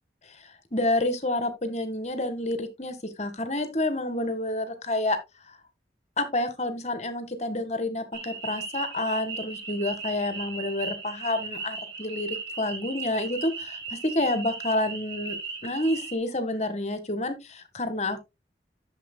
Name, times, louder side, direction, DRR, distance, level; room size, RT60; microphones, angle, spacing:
voice 1, 0.7-5.2 6.2-15.3 15.6-18.2, left 1 dB, 40° left, 1.7 m, -29 dB
sound 1, 8.1-16.2, right 4 dB, 75° right, 3.6 m, -37 dB
12.0 x 7.5 x 2.3 m
head